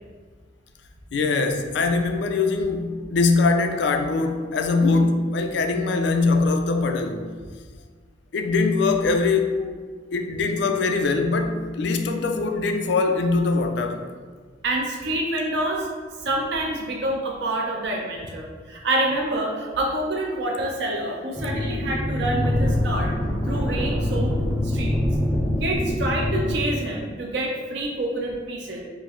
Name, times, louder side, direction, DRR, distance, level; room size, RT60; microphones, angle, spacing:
voice 1, 1.1-7.2 8.3-9.6 10.1-14.0, left 3 dB, 65° left, 6 dB, 0.4 m, -22 dB
voice 2, 14.6-15.9 16.2-23.1 23.5-24.3 24.6-25.0 25.6-28.8, right 1 dB, 60° right, -1 dB, 0.5 m, -27 dB
sound 1, 21.4-26.6, left 1 dB, 5° left, 0.6 m, -24 dB
4.5 x 2.0 x 3.7 m, 1.6 s
head